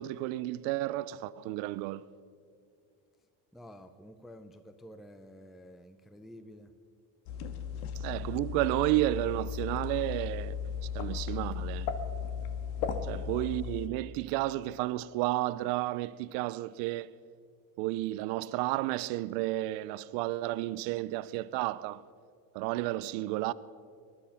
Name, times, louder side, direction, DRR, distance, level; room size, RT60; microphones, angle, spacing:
voice 1, 0.0-2.0 8.0-11.9 13.0-17.1 17.8-22.0 22.5-23.5, right 16 dB, 75° right, 0.6 m, -32 dB
voice 2, 3.5-6.7, equal, ahead, 0.4 m, -50 dB
sound 1, 7.3-13.9, left 7 dB, 75° left, 1.5 m, -36 dB
20.5 x 11.5 x 5.7 m
cardioid pair, 140°, 43 cm